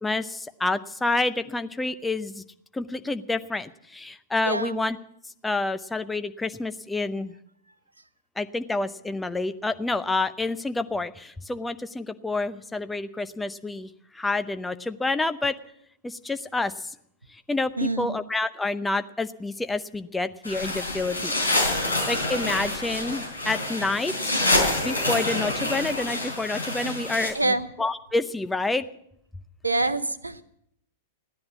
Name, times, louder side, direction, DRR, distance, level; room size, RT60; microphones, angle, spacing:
voice 1, 0.0-2.4 2.7-5.0 5.4-7.3 8.4-15.6 16.0-16.9 17.3-21.4 21.8-24.3 24.8-28.8, left 2 dB, 10° left, 11 dB, 0.7 m, -28 dB
voice 2, 4.4-4.8 17.8-18.2 27.3-27.7 29.6-30.4, right 2 dB, 85° right, 13 dB, 0.8 m, -26 dB
sound 1, 20.4-27.3, left 2 dB, 80° left, 3.6 m, -27 dB
15.5 x 10.5 x 7.3 m, 0.73 s
figure-of-eight pair, 100°, 0 cm